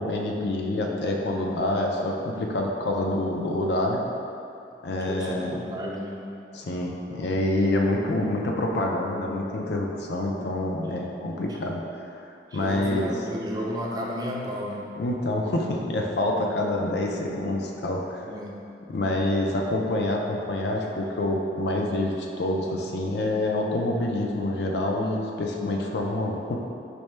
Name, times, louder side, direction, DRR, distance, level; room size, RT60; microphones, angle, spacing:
voice 1, 0.0-4.0 4.8-5.6 6.5-11.8 12.5-13.1 15.0-18.3 18.9-26.6, left 1 dB, 70° left, 0 dB, 0.4 m, -27 dB
voice 2, 4.9-6.3 11.5-11.6 12.5-14.9 18.2-18.7, equal, 20° right, -2 dB, 0.3 m, -33 dB
4.3 x 2.1 x 3.1 m, 2.6 s
head